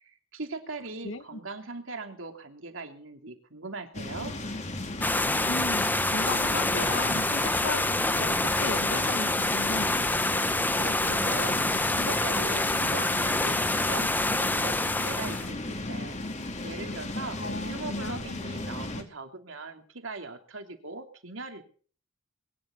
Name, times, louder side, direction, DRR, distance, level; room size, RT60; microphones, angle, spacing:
voice 1, 0.0-4.3 10.7-16.2 16.6-17.4 17.6-21.6, right 3 dB, 75° right, 5 dB, 3.1 m, -40 dB
voice 2, 1.0-1.4 5.4-10.0 17.4-18.2, left 2 dB, 75° left, 11 dB, 1.6 m, -36 dB
sound 1, 3.9-19.0, left 2 dB, 35° left, 2.6 m, -36 dB
sound 2, 5.0-15.5, left 2 dB, 10° left, 0.8 m, -27 dB
22.0 x 11.0 x 5.7 m, 0.44 s
head